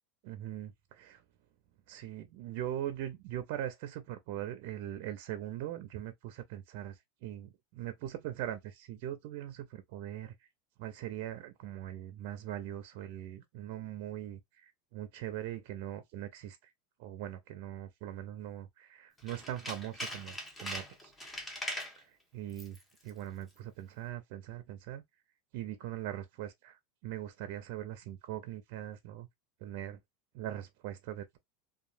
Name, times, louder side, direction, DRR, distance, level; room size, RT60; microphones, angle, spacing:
voice 1, 0.2-1.2 1.9-10.3 10.8-16.6 17.0-21.1 22.0-22.1 22.3-22.8 23.0-25.0 25.5-29.3 29.6-30.0 30.3-31.4, right 12 dB, 65° right, 0.4 m, -41 dB
Tools, 19.2-22.0 22.5-22.8 23.1-23.2, left 1 dB, 15° left, 1.2 m, -41 dB
2.7 x 2.5 x 2.5 m
hypercardioid pair, 100°, 0 cm